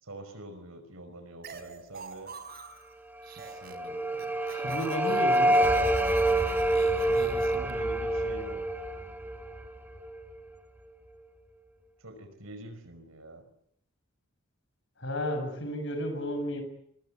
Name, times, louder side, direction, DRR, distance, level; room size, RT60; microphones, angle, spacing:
voice 1, 0.0-2.3 3.3-4.4 6.9-8.6 12.0-13.4, right 1 dB, 75° right, 8 dB, 5.3 m, -46 dB
sound 1, 1.4-2.9 3.2-3.9 4.1-7.7, right 5 dB, 45° right, 3.5 m, -46 dB
sound 2, 3.4-10.4, right 1 dB, 10° right, 1.6 m, -27 dB
voice 2, 4.5-5.6 15.0-16.6, equal, 55° left, 7 dB, 7.1 m, -32 dB
27.5 x 22.5 x 8.2 m, 0.70 s
head